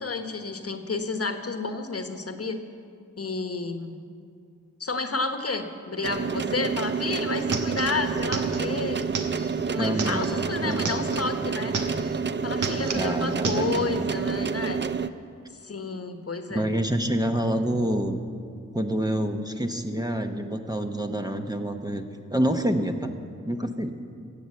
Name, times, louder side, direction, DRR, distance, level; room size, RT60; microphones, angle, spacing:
voice 1, 0.0-2.6 3.2-4.0 4.8-9.1 9.4-11.8 12.4-14.8 15.6-16.7, left 3 dB, 50° left, 7 dB, 1.2 m, -31 dB
sound 1, 6.0-15.1, right 5 dB, 35° right, 0.5 m, -28 dB
sound 2, 6.8-6.9 7.1-11.3 11.6-12.2 12.5-13.9, right 3 dB, 85° right, 1.2 m, -33 dB
voice 2, 9.8-11.0 12.9-13.7 14.0-14.1 16.5-18.2 18.7-23.1 23.4-23.9, right 1 dB, 15° right, 5 dB, 0.9 m, -27 dB
15.5 x 8.2 x 7.6 m, 2.4 s
cardioid pair, 60°, 31 cm